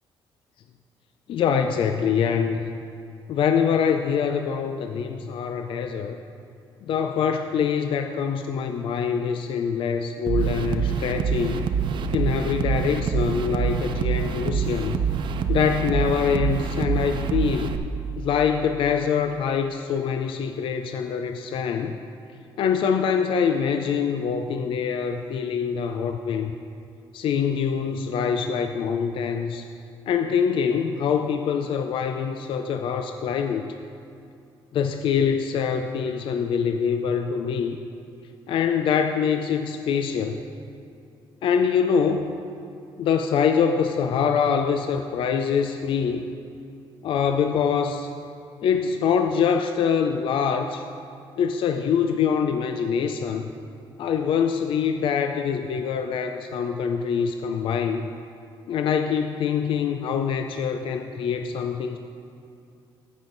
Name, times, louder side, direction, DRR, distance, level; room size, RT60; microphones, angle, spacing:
voice 1, 1.3-2.7 3.3-6.2 6.9-11.6 12.1-15.0 15.5-17.8 18.2-22.0 22.6-26.5 27.1-29.7 30.1-33.7 34.7-37.8 38.5-40.4 41.4-42.4 43.0-46.3 47.0-48.1 48.6-50.8 51.4-53.5 54.0-58.1 58.7-62.0, left 7 dB, 65° left, 6 dB, 0.4 m, -24 dB
sound 1, 10.3-17.8, right 7 dB, 60° right, 0.5 m, -25 dB
14.5 x 5.4 x 3.9 m, 2.6 s
cardioid pair, 105°, 9 cm